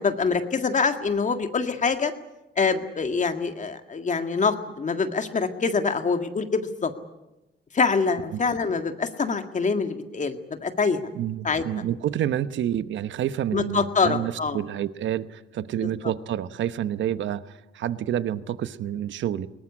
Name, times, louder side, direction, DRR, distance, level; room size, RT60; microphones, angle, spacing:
voice 1, 0.0-2.1 2.6-6.9 7.7-11.0 11.4-11.6 13.5-14.6, left 4 dB, 40° left, 7 dB, 1.9 m, -25 dB
voice 2, 11.1-19.5, right 10 dB, 70° right, 13 dB, 1.0 m, -28 dB
21.5 x 19.0 x 9.9 m, 0.97 s
cardioid pair, 90°, 20 cm